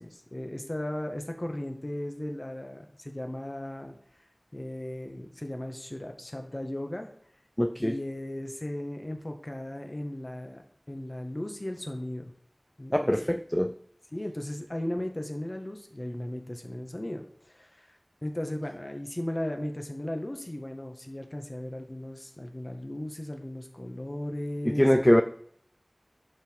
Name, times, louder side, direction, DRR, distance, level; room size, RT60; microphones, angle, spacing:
voice 1, 0.0-4.0 4.5-7.1 7.8-10.6 10.9-12.2 12.8-13.4 14.1-17.9 18.2-25.2, left 1 dB, 40° left, 4 dB, 1.8 m, -36 dB
voice 2, 7.6-8.0 12.9-13.7 24.6-25.2, equal, 15° left, 8 dB, 0.6 m, -23 dB
11.5 x 6.1 x 4.8 m, 0.63 s
wide cardioid pair, 40°, 0 cm